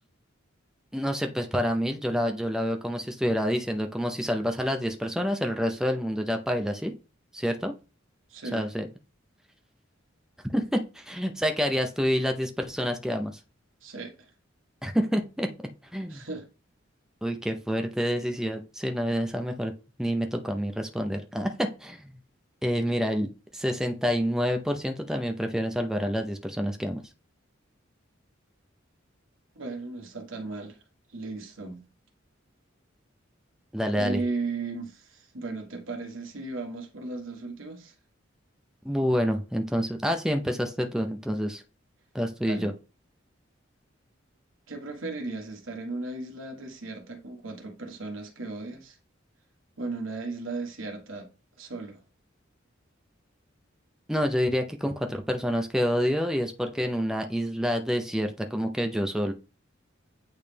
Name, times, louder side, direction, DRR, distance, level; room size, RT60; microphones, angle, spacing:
voice 1, 0.9-6.9 7.3-7.7 8.5-8.9 10.5-13.3 14.8-15.5 15.9-16.2 17.2-19.7 20.0-22.2 22.6-27.0 33.7-34.2 38.8-41.6 42.1-42.7 54.1-59.3, equal, 5° right, 0.6 m, -28 dB
voice 2, 8.3-8.7 13.8-14.3 16.1-16.5 29.5-30.8 31.1-31.8 33.9-37.9 42.5-42.7 44.7-49.0 49.8-51.3 51.6-52.0, right 3 dB, 85° right, 1.4 m, -36 dB
8.7 x 3.2 x 3.4 m
head